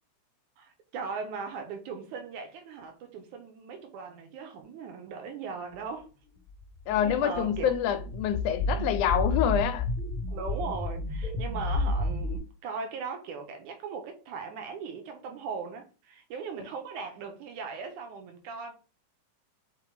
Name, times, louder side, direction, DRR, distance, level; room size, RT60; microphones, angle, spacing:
voice 1, 0.6-6.1 7.0-7.7 10.3-18.7, right 5 dB, 80° right, 2.7 m, -38 dB
sound 1, 6.6-12.4, left 2 dB, ahead, 2.4 m, -31 dB
voice 2, 6.9-9.9, left 9 dB, 80° left, 2.1 m, -27 dB
5.5 x 3.8 x 4.8 m
omnidirectional pair, 3.5 m